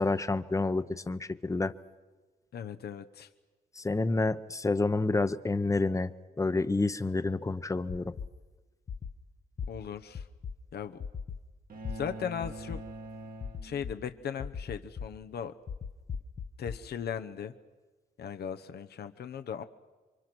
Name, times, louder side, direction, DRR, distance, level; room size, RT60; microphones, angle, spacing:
voice 1, 0.0-1.7 3.8-6.1 6.4-8.1, left 3 dB, 20° left, 13 dB, 0.9 m, -29 dB
voice 2, 2.5-3.3 9.7-10.2 10.7-11.0 11.9-12.8 13.6-15.5 16.6-17.5 18.2-19.6, left 8 dB, 70° left, 8 dB, 1.0 m, -37 dB
sound 1, 7.9-8.3 8.9-9.1 9.6-9.7 10.1-10.5 11.0-11.4 11.8-11.9 12.4-12.8 13.4-13.9 14.4-15.1 15.7-16.8, left 6 dB, 45° left, 1.0 m, -37 dB
sound 2, 11.7-14.2, right 2 dB, 55° right, 1.6 m, -44 dB
27.5 x 24.5 x 6.2 m, 1.3 s
cardioid pair, 95°, 17 cm